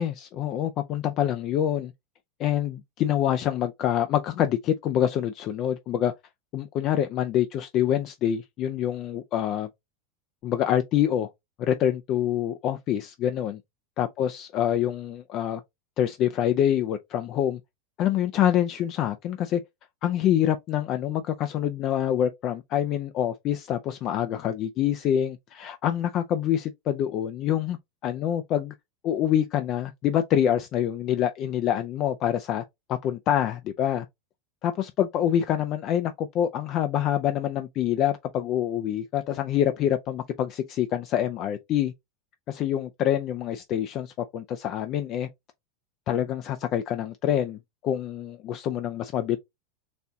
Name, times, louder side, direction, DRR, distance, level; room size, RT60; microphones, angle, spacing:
voice 1, 0.0-1.9 2.4-6.1 6.5-9.7 10.4-11.3 11.6-13.6 14.0-15.6 16.0-17.6 18.0-19.6 20.0-27.8 28.0-28.7 29.0-32.6 32.9-34.1 34.6-41.9 42.5-45.3 46.1-49.4, left 10 dB, 40° left, 0.4 m, -26 dB
4.2 x 2.2 x 3.7 m
supercardioid pair, 135°, 0 cm